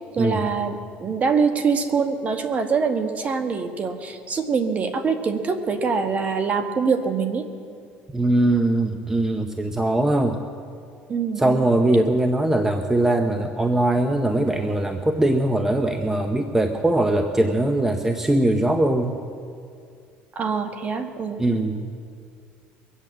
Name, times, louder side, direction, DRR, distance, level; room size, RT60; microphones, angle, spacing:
voice 1, 0.1-7.4 11.1-11.6 20.3-21.4, right 5 dB, 35° right, 7 dB, 1.4 m, -24 dB
voice 2, 8.1-10.4 11.4-19.2 21.4-21.9, right 1 dB, 10° right, 6 dB, 0.7 m, -21 dB
22.5 x 8.4 x 7.6 m, 2.3 s
cardioid pair, 125°, 4 cm